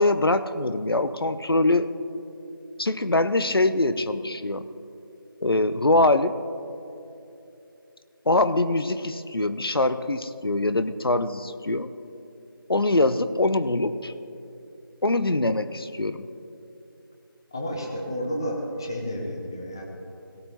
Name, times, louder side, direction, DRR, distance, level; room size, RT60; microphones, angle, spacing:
voice 1, 0.0-1.9 2.8-4.6 5.4-6.4 8.3-11.9 12.7-14.1 15.0-16.3, left 2 dB, 80° left, 12 dB, 0.7 m, -23 dB
voice 2, 17.5-19.8, equal, 10° left, 1 dB, 0.6 m, -31 dB
17.5 x 15.5 x 3.0 m, 2.8 s
figure-of-eight pair, 165°, 12 cm